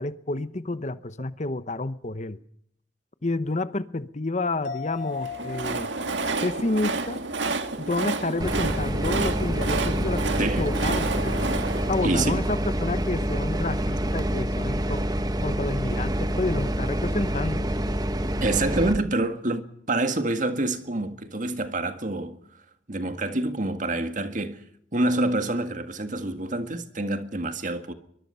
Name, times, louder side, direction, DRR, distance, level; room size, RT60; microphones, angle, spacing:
voice 1, 0.0-2.4 3.2-5.9 6.4-7.2 7.8-11.5 11.9-15.0 15.4-17.7, left 2 dB, 40° left, 0.9 m, -29 dB
sound 1, 4.6-8.3 8.7-8.8, left 5 dB, 70° left, 2.8 m, -38 dB
Train, 5.0-13.2, right 3 dB, 80° right, 1.8 m, -30 dB
sound 2, 8.4-19.0, right 1 dB, 20° right, 1.1 m, -27 dB
voice 2, 10.4-10.7 12.0-12.4 18.4-22.4 22.9-24.6 24.9-27.9, right 2 dB, 45° right, 1.9 m, -27 dB
23.5 x 21.5 x 5.7 m
head